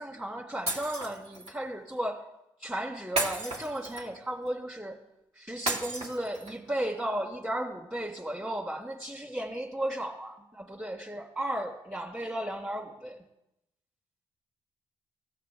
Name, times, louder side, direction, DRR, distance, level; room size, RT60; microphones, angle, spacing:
voice 1, 0.0-2.2 2.6-5.0 5.4-13.2, right 1 dB, 15° right, -5 dB, 2.1 m, -35 dB
Shatter, 0.7-1.6 3.2-4.3 5.7-6.7, right 1 dB, 65° right, 2.2 m, -33 dB
16.0 x 6.6 x 3.5 m, 0.87 s
supercardioid pair, 50°, 12 cm